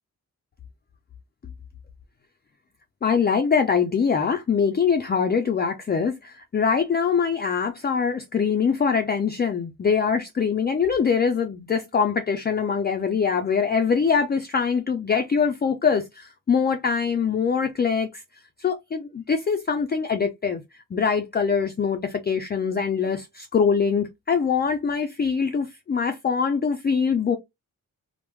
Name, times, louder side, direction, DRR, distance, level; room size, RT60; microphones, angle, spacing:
voice 1, 3.0-18.2 18.6-20.6 20.9-27.4, left 6 dB, 30° left, 0.4 m, -23 dB
3.3 x 2.0 x 2.9 m
wide cardioid pair, 105°, 34 cm